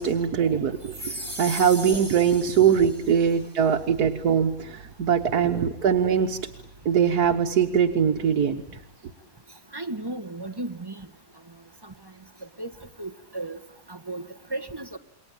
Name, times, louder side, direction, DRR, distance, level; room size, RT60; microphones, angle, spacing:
voice 1, 0.0-6.4 6.9-8.6, right 7 dB, 70° right, 1.7 m, -22 dB
sound 1, 0.8-3.3, equal, 40° right, 6.2 m, -37 dB
voice 2, 9.7-10.9 12.6-12.7 13.0-13.6 13.9-14.2 14.5-14.9, right 2 dB, 15° right, 1.2 m, -34 dB
28.5 x 22.0 x 9.0 m
omnidirectional pair, 1.7 m